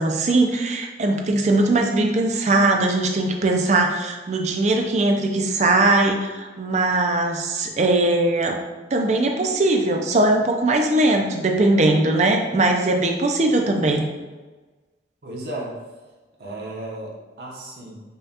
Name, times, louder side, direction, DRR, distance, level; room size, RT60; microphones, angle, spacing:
voice 1, 0.0-8.6 8.9-14.0, right 2 dB, 40° right, 3 dB, 0.4 m, -20 dB
voice 2, 15.2-15.8 16.4-18.0, right 1 dB, 65° right, -3 dB, 0.9 m, -34 dB
5.4 x 2.3 x 2.8 m, 1.3 s
head